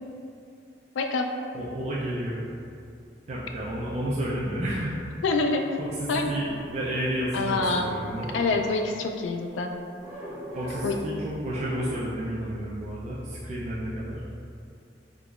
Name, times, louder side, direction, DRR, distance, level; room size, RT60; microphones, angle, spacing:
voice 1, 1.0-1.3 5.2-5.7 6.1-6.3 7.3-7.9 8.3-9.7 10.8-11.0, left 3 dB, 90° left, 4 dB, 0.3 m, -26 dB
voice 2, 1.5-2.5 3.3-5.1 5.8-8.3 10.5-14.2, equal, 35° right, -7 dB, 0.4 m, -31 dB
sound 1, 6.1-7.7 8.0-9.3 10.0-11.1 11.4-12.1, right 1 dB, 10° right, 0.8 m, -41 dB
3.7 x 2.9 x 2.3 m, 2.4 s
head